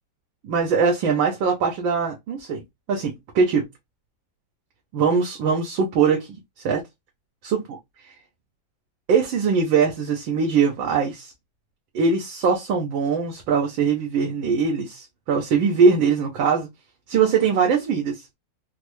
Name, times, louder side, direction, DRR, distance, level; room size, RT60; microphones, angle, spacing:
voice 1, 0.4-2.6 2.9-3.7 4.9-6.4 6.6-6.8 7.4-7.8 9.1-11.3 11.9-16.7 17.1-18.2, right 5 dB, 85° right, 1.6 m, -21 dB
4.3 x 2.0 x 3.0 m
omnidirectional pair, 2.1 m